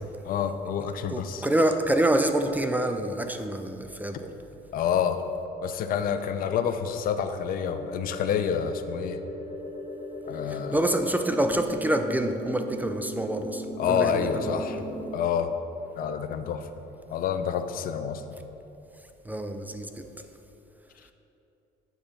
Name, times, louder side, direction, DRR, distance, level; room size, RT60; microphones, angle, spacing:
voice 1, 0.2-1.4 4.7-5.2 5.6-9.2 10.2-10.8 13.8-14.8 15.1-15.5 16.0-16.7 17.1-18.2, left 8 dB, 60° left, 9 dB, 0.5 m, -28 dB
voice 2, 1.1-4.3 10.5-14.8 19.2-20.1, right 1 dB, 10° right, 7 dB, 0.3 m, -27 dB
sound 1, 7.2-15.2, equal, 35° left, 0.8 m, -38 dB
8.6 x 3.0 x 5.4 m, 3.0 s
cardioid pair, 110°, 17 cm